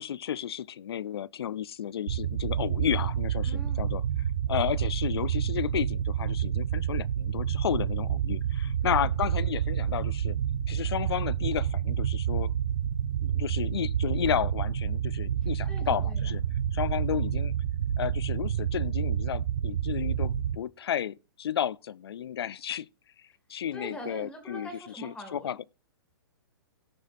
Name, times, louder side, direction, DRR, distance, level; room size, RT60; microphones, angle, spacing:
voice 1, 0.0-4.0 4.5-10.4 10.7-12.5 13.2-16.4 16.7-17.5 18.0-22.9 23.5-24.7 25.0-25.6, left 9 dB, 80° left, 0.4 m, -32 dB
sound 1, 2.1-20.5, right 9 dB, 70° right, 0.7 m, -29 dB
voice 2, 3.4-3.8 8.8-9.1 15.7-16.3 23.7-25.7, equal, 10° left, 2.0 m, -43 dB
17.5 x 6.4 x 2.6 m
hypercardioid pair, 160°, 13 cm